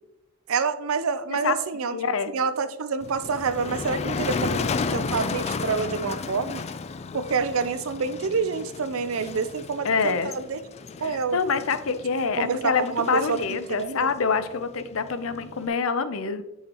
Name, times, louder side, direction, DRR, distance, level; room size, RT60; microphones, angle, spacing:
voice 1, 0.5-2.0 2.3-4.6 4.9-6.6 7.1-10.6 11.0-11.4 12.4-14.1, right 5 dB, 85° right, 12 dB, 0.6 m, -27 dB
voice 2, 1.9-2.3 9.8-10.3 11.0-16.4, left 5 dB, 75° left, 11 dB, 0.6 m, -26 dB
Motor vehicle (road), 3.0-15.7, left 4 dB, 30° left, 0.3 m, -33 dB
8.4 x 5.7 x 3.0 m, 0.89 s
head